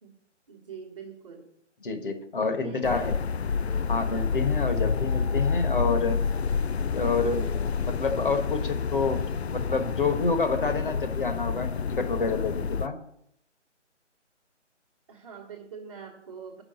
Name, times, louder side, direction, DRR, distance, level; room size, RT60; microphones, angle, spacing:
voice 1, 0.5-1.5 2.3-3.1 15.1-16.6, right 6 dB, 25° right, -5 dB, 1.4 m, -43 dB
voice 2, 1.8-3.1 3.9-6.2 6.9-7.5 7.8-13.0, left 4 dB, 45° left, 8 dB, 1.4 m, -28 dB
sound 1, 2.8-12.9, left 5 dB, 60° left, 0.4 m, -28 dB
9.5 x 6.2 x 8.1 m, 0.73 s
hypercardioid pair, 170°, 37 cm